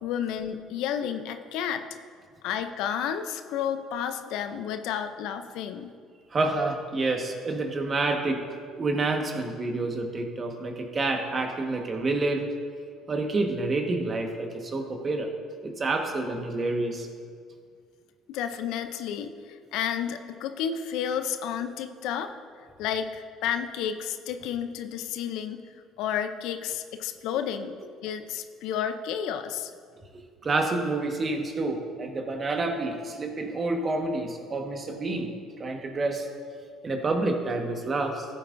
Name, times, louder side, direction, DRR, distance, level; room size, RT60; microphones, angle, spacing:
voice 1, 0.0-1.8 2.4-5.9 18.3-22.3 22.8-25.6 26.0-29.7, left 8 dB, 75° left, 8 dB, 0.5 m, -31 dB
voice 2, 6.3-8.4 8.7-12.5 13.1-15.3 15.6-17.1 30.4-35.3 35.6-36.3 36.8-38.3, right 2 dB, 35° right, 3 dB, 1.4 m, -28 dB
14.0 x 8.3 x 2.6 m, 2.1 s
supercardioid pair, 70°, 0 cm